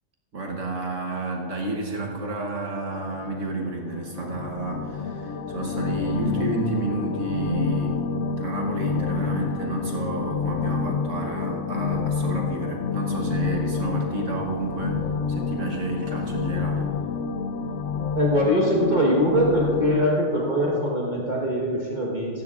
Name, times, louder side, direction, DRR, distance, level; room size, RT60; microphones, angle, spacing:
voice 1, 0.3-8.1 8.4-15.0 15.3-16.9, right 2 dB, 70° right, 0 dB, 1.4 m, -30 dB
sound 1, 3.7-20.0, left 5 dB, 70° left, 0.9 m, -28 dB
voice 2, 18.1-22.4, equal, 35° right, -4 dB, 1.4 m, -22 dB
17.5 x 14.5 x 2.4 m, 2.8 s
omnidirectional pair, 1.3 m